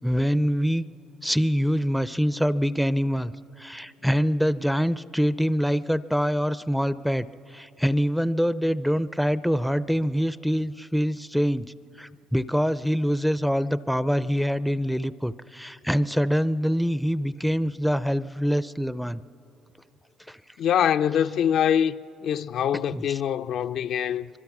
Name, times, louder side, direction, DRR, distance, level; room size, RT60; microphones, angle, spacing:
voice 1, 0.0-0.8 1.2-3.3 3.6-11.7 12.0-19.2 20.3-20.4 22.9-23.2, equal, ahead, 0.4 m, -25 dB
voice 2, 20.6-21.9 22.2-24.3, left 9 dB, 65° left, 0.4 m, -24 dB
24.5 x 23.0 x 6.0 m
cardioid pair, 110°, 0 cm